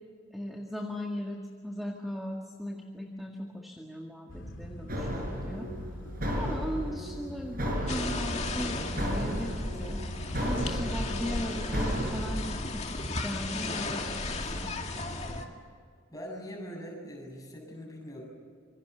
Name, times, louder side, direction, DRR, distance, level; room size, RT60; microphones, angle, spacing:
voice 1, 0.3-5.7 6.4-9.5 9.8-10.1 10.4-12.8 13.2-14.7, equal, ahead, 0 dB, 1.8 m, -38 dB
sound 1, 4.3-12.7, equal, 65° left, 2.2 m, -44 dB
sound 2, 4.9-12.5, equal, 45° right, 6.3 m, -34 dB
sound 3, 7.9-15.5, left 2 dB, 30° left, 2.1 m, -35 dB
voice 2, 16.1-18.2, equal, 15° left, -1 dB, 7.3 m, -43 dB
27.0 x 24.0 x 6.9 m, 2.1 s
head